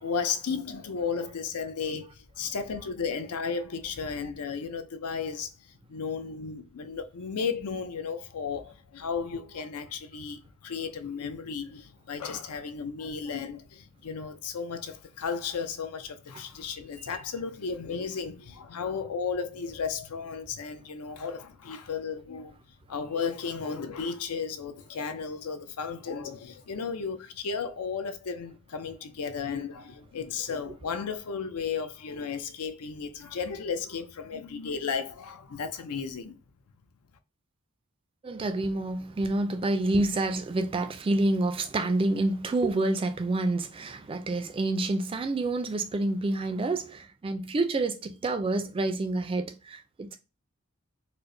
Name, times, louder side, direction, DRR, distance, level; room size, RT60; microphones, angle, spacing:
voice 1, 0.0-22.6 22.9-36.4, left 5 dB, 80° left, 0.5 m, -34 dB
voice 2, 38.2-50.2, right 2 dB, 25° right, 0.3 m, -28 dB
4.4 x 2.0 x 2.6 m
head